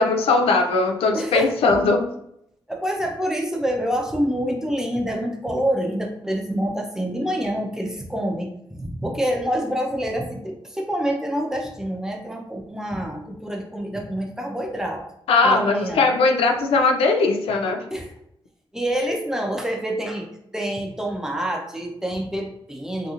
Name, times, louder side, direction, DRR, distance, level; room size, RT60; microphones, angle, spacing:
voice 1, 0.0-2.0 15.3-17.8, left 3 dB, 90° left, 4 dB, 0.4 m, -19 dB
voice 2, 1.1-1.7 2.7-15.0 15.4-16.1 17.9-18.1 18.7-23.1, equal, 5° right, 1 dB, 0.6 m, -27 dB
2.8 x 2.6 x 2.5 m, 0.76 s
cardioid pair, 75°, 10 cm